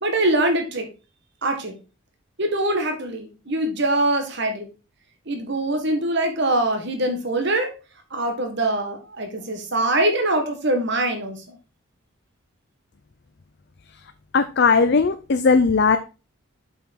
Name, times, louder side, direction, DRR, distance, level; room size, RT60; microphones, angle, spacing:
voice 1, 0.0-0.9 1.4-1.7 2.4-4.7 5.3-7.7 8.1-11.4, right 1 dB, 55° right, 5 dB, 1.7 m, -23 dB
voice 2, 13.9-16.0, left 4 dB, 50° left, 9 dB, 0.5 m, -19 dB
7.1 x 5.6 x 4.4 m, 0.31 s
head